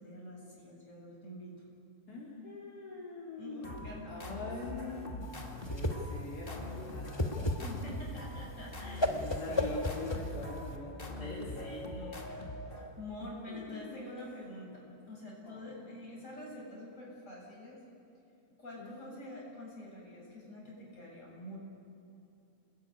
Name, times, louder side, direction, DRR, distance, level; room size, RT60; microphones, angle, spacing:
voice 1, 0.0-1.5 3.4-4.5 7.6-10.0 10.2-10.3 11.1-12.5 12.8-17.8 18.6-21.6, left 1 dB, 55° left, -4 dB, 7.5 m, -47 dB
voice 2, 2.1-3.7 4.1-7.5 9.1-11.6 13.2-14.0 15.4-15.8 18.8-18.9, left 3 dB, 85° left, -5 dB, 4.3 m, -43 dB
sound 1, 3.6-13.1, left 1 dB, 35° left, 2.4 m, -43 dB
Whoosh swoosh swish, 5.2-10.7, left 1 dB, 20° left, 1.5 m, -34 dB
26.5 x 20.0 x 9.9 m, 2.8 s
omnidirectional pair, 1.6 m